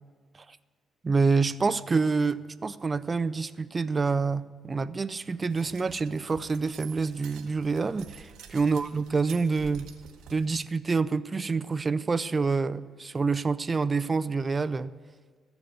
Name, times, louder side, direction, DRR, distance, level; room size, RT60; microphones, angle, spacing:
voice 1, 1.0-9.9 10.3-14.9, right 4 dB, 25° right, 15 dB, 0.4 m, -27 dB
sound 1, 5.5-10.5, right 7 dB, 85° right, 1.0 m, -48 dB
14.0 x 7.0 x 8.0 m, 1.5 s
cardioid pair, 110°, 0 cm